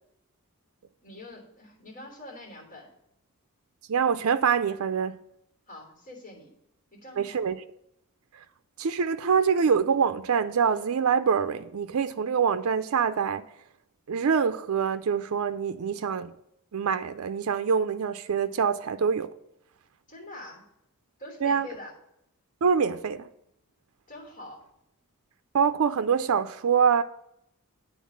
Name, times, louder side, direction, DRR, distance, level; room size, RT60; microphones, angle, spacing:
voice 1, 1.0-2.9 5.7-6.5 6.9-7.4 20.1-20.6 21.2-21.9 24.1-24.6, left 1 dB, 40° left, 3.3 m, -44 dB
voice 2, 3.9-5.2 7.2-7.6 8.8-13.4 14.1-16.3 16.7-19.3 21.4-21.7 22.6-23.3 25.5-27.0, right 6 dB, 75° right, 0.4 m, -25 dB
9.3 x 3.9 x 7.1 m
head